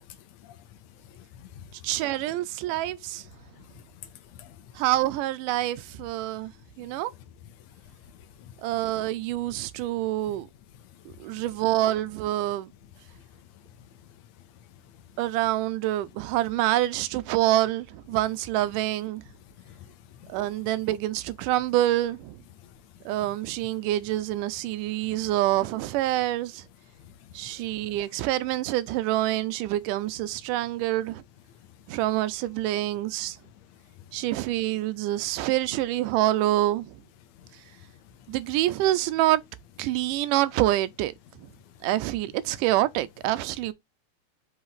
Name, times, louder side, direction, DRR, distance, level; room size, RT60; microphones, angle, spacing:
voice 1, 0.0-1.9 3.4-4.7 6.8-7.0 7.6-8.6 10.9-11.5 13.1-13.2 13.6-14.2 14.9-15.0 19.5-20.5 22.6-23.1 23.5-23.6 27.0-28.0 34.0-34.2 37.3-38.4 41.6-41.7, left 9 dB, 70° left, 1.9 m, -51 dB
voice 2, 1.8-3.2 4.8-6.5 6.8-7.1 8.6-10.5 11.1-12.7 15.2-19.2 20.3-22.4 23.1-26.7 27.3-31.2 31.9-33.4 34.1-37.0 38.3-39.4 39.8-41.1 41.4-41.5 41.8-43.7, right 15 dB, 90° right, 2.2 m, -26 dB
5.8 x 3.2 x 5.4 m
omnidirectional pair, 3.7 m